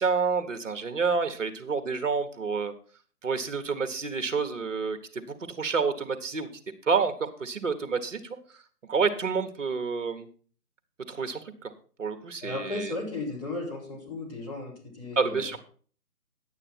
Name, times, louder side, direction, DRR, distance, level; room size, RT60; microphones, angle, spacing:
voice 1, 0.0-2.7 3.2-6.5 6.9-8.4 8.9-10.3 11.1-11.7 12.0-12.9 15.2-15.6, right 5 dB, 50° right, 8 dB, 1.5 m, -29 dB
voice 2, 12.4-15.6, left 2 dB, 20° left, -4 dB, 3.5 m, -35 dB
10.5 x 8.8 x 4.4 m, 0.43 s
figure-of-eight pair, 155°, 47 cm